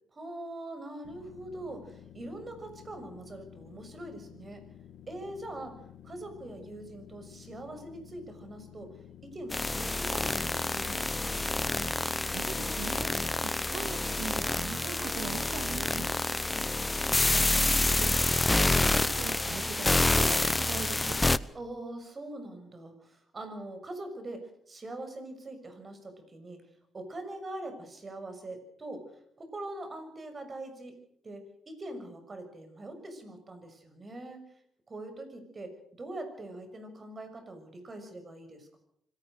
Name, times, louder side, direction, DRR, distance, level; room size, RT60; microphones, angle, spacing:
voice 1, 0.1-4.6 5.1-5.8 6.0-8.9 9.3-11.6 21.5-26.6 26.9-29.0 29.4-30.9 31.2-34.4 34.9-38.8, right 1 dB, 30° right, 8 dB, 6.5 m, -43 dB
sound 1, 1.0-12.7, left 10 dB, 80° left, 2.2 m, -52 dB
sound 2, 9.5-21.4, left 2 dB, 15° left, 0.8 m, -28 dB
voice 2, 12.3-16.2 17.3-21.2, right 8 dB, 80° right, 9 dB, 2.2 m, -42 dB
25.5 x 18.0 x 6.5 m, 0.70 s
cardioid pair, 90°, 0 cm